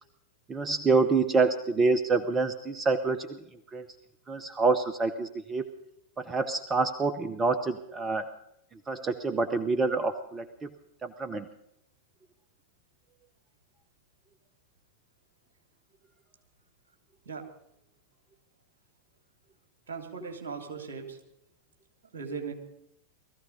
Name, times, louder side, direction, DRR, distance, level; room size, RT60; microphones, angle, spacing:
voice 1, 0.5-3.4 3.7-3.9 4.3-5.7 6.2-8.3 8.7-10.7 11.0-11.5, right 4 dB, 20° right, 10 dB, 0.9 m, -27 dB
voice 2, 19.9-21.2 22.1-22.5, right 5 dB, 60° right, 4 dB, 3.0 m, -38 dB
19.5 x 14.5 x 5.2 m, 0.80 s
figure-of-eight pair, 90°, 0 cm